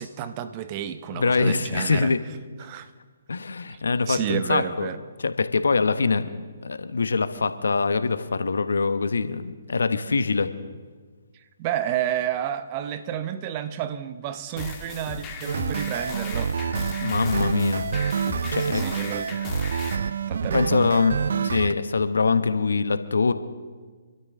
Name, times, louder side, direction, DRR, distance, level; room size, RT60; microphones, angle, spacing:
voice 1, 0.0-2.1 2.6-2.9 3.7-3.8 4.1-5.0 11.6-16.6 18.6-19.8 20.3-20.8, right 10 dB, 35° right, 0.9 m, -31 dB
voice 2, 1.1-2.2 3.3-4.9 5.2-6.3 6.6-10.5 17.0-17.8 18.5-18.8 20.5-21.2 21.4-23.3, left 4 dB, 75° left, 1.0 m, -23 dB
sound 1, 14.6-20.0, left 4 dB, 25° left, 2.1 m, -37 dB
sound 2, 15.5-21.7, right 6 dB, 65° right, 0.6 m, -27 dB
26.5 x 13.0 x 3.7 m
figure-of-eight pair, 135°, 0 cm